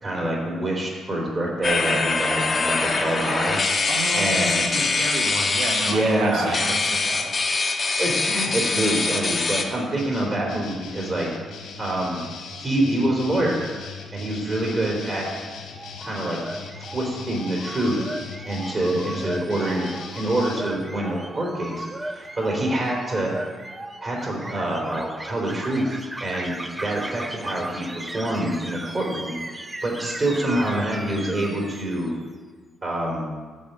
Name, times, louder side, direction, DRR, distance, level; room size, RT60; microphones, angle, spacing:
voice 1, 0.0-3.6 4.1-4.7 5.8-6.7 8.0-11.3 11.8-12.2 12.6-13.6 14.1-15.3 16.0-16.4 16.9-18.0 18.4-19.8 20.1-23.3 24.0-32.1 32.8-33.3, right 1 dB, 35° right, -3 dB, 3.2 m, -26 dB
sound 1, 1.6-9.6, left 3 dB, 35° left, 1.1 m, -24 dB
voice 2, 3.9-7.3 30.5-30.8, right 3 dB, 80° right, 3 dB, 1.4 m, -32 dB
sound 2, 10.0-20.6, left 4 dB, 80° left, 1.4 m, -39 dB
Song Thrush processed, 15.7-32.3, right 1 dB, 15° right, 0.7 m, -37 dB
11.5 x 4.3 x 7.8 m, 1.5 s
cardioid pair, 90°, 0 cm